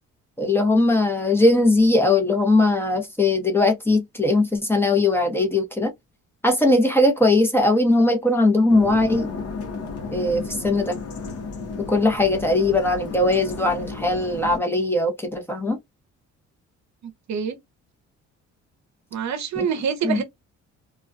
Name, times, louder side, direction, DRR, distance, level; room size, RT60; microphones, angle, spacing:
voice 1, 0.4-5.9 6.4-9.3 10.1-11.0 11.8-15.8 19.6-19.7 20.0-20.2, left 2 dB, 10° left, 0.8 m, -20 dB
sound 1, 8.7-14.6, left 4 dB, 50° left, 0.8 m, -33 dB
voice 2, 19.1-20.2, right 7 dB, 65° right, 0.7 m, -25 dB
2.3 x 2.2 x 2.5 m
cardioid pair, 90°, 30 cm